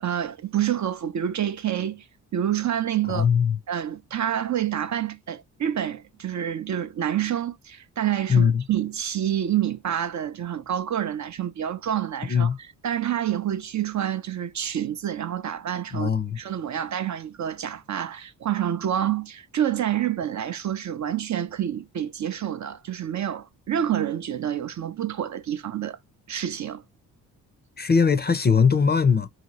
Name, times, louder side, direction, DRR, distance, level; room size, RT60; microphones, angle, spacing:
voice 1, 0.0-2.1 2.3-3.3 3.7-26.0 26.3-26.8, right 10 dB, 45° right, 0.5 m, -28 dB
voice 2, 3.1-3.6 8.3-8.6 12.3-12.6 15.9-16.4 27.8-29.3, left 6 dB, 25° left, 0.5 m, -20 dB
2.8 x 2.7 x 2.8 m
supercardioid pair, 50°, 40 cm